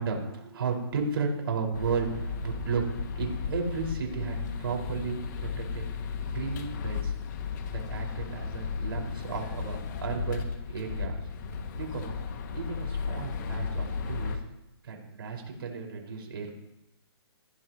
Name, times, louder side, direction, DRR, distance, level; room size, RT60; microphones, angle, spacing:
voice 1, 0.0-2.8 3.2-5.9 6.2-7.2 7.7-11.3 11.7-12.2 12.5-14.4 14.8-16.5, right 5 dB, 60° right, 1 dB, 5.4 m, -34 dB
sound 1, 1.7-14.4, left 5 dB, 45° left, 2.2 m, -35 dB
18.5 x 15.5 x 3.1 m, 0.88 s
hypercardioid pair, 150°, 14 cm